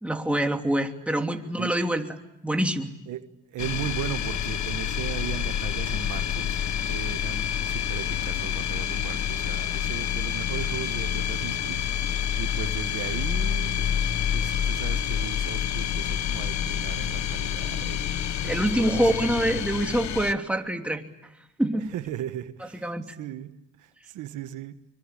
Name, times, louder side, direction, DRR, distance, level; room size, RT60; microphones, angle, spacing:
voice 1, 0.0-2.1 2.4-2.9 18.4-21.0 21.6-21.9 22.8-23.0, right 1 dB, 5° right, 4 dB, 2.9 m, -25 dB
voice 2, 3.1-18.1 18.4-19.1 21.9-24.9, right 12 dB, 90° right, 10 dB, 1.5 m, -37 dB
sound 1, 3.6-20.3, left 9 dB, 65° left, 1.4 m, -28 dB
25.0 x 23.5 x 10.0 m, 0.87 s
cardioid pair, 90°, 30 cm